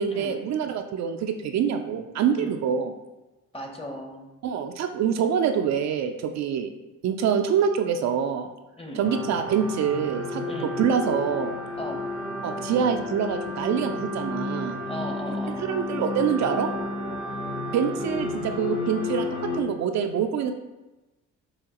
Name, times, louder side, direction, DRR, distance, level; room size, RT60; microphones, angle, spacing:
voice 1, 0.0-2.9 4.4-6.7 7.0-8.5 9.0-10.4 10.8-11.6 12.4-14.8 15.6-16.7 17.7-20.5, right 7 dB, 65° right, 6 dB, 0.4 m, -25 dB
voice 2, 3.5-4.3 8.8-9.0 10.4-10.8 11.7-12.0 14.9-15.6, equal, 20° left, 2 dB, 0.8 m, -37 dB
sound 1, 9.0-19.6, left 2 dB, 80° left, 1.2 m, -31 dB
5.6 x 2.8 x 2.9 m, 1.1 s
cardioid pair, 90°, 30 cm